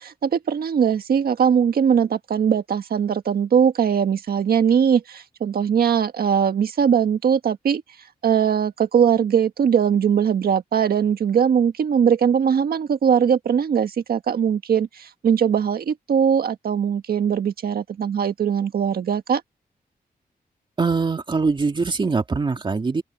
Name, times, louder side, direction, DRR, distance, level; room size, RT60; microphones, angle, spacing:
voice 1, 0.0-7.8 8.2-19.4, right 7 dB, 80° right, 1.7 m, -20 dB
voice 2, 20.8-23.0, right 4 dB, 30° right, 2.4 m, -22 dB
open air
wide cardioid pair, 140°, 16 cm